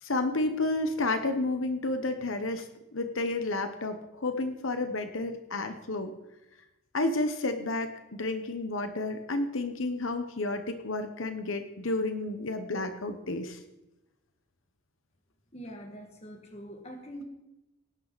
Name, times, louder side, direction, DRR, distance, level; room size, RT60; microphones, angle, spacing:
voice 1, 0.0-6.1 6.9-13.6, left 2 dB, 80° left, 8 dB, 1.2 m, -31 dB
voice 2, 15.5-17.2, equal, 30° left, 3 dB, 2.1 m, -44 dB
18.5 x 11.5 x 4.2 m, 0.97 s
head